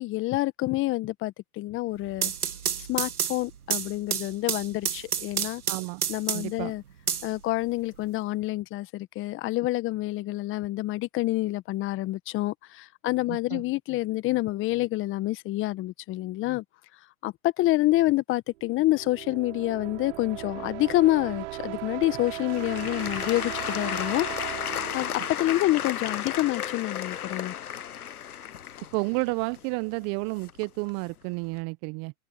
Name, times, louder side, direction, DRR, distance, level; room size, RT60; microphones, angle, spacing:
voice 1, 0.0-2.3 2.8-5.6 6.1-6.8 7.2-16.6 17.2-24.3 24.9-25.1 25.4-27.5, left 17 dB, 30° left, 1.5 m, -27 dB
sound 1, 2.0-6.6 7.1-8.0, right 8 dB, 80° right, 2.2 m, -30 dB
voice 2, 5.7-6.0 6.3-6.7 13.3-13.6 28.9-32.1, right 30 dB, 35° right, 1.2 m, -31 dB
sound 2, 18.6-26.3, right 17 dB, 50° right, 5.5 m, -38 dB
Applause / Crowd, 22.0-30.9 31.5-31.6, left 9 dB, 85° left, 0.9 m, -34 dB
open air
hypercardioid pair, 115°, 43 cm